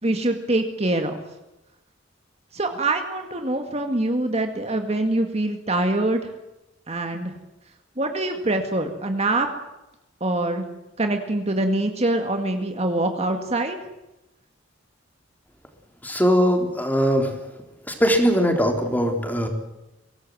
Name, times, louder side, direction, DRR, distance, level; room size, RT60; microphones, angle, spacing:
voice 1, 0.0-1.2 2.5-6.2 6.9-7.4 8.0-9.5 10.2-10.7 11.0-13.8, right 2 dB, 35° right, 5 dB, 2.0 m, -24 dB
voice 2, 16.0-17.3 18.0-19.5, equal, 10° left, 4 dB, 3.7 m, -20 dB
24.0 x 17.5 x 7.8 m, 0.97 s
head